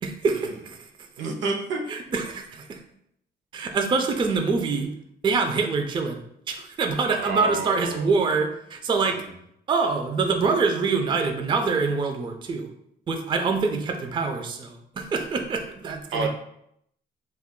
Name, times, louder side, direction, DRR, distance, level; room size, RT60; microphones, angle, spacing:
voice 1, 0.0-0.9 1.9-2.8 3.5-4.9 5.2-9.2 9.7-12.7 13.1-16.3, right 4 dB, 25° right, 4 dB, 0.3 m, -25 dB
voice 2, 1.2-1.9 7.2-8.1 9.1-9.2 16.1-16.3, right 3 dB, 70° right, 4 dB, 0.6 m, -29 dB
2.3 x 2.2 x 3.6 m, 0.74 s
cardioid pair, 90°, 20 cm